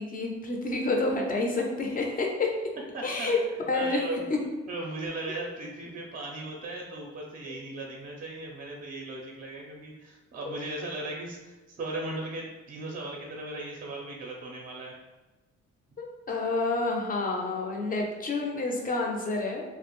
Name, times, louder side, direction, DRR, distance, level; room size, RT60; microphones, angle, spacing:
voice 1, 0.0-2.5 3.0-3.4 3.7-4.0 4.3-4.4 16.0-19.6, left 3 dB, 30° left, 1 dB, 0.5 m, -29 dB
voice 2, 2.9-3.3 3.7-4.2 4.7-14.9, right 2 dB, 30° right, -1 dB, 0.5 m, -37 dB
2.4 x 2.0 x 3.0 m, 1.1 s
cardioid pair, 90°, 30 cm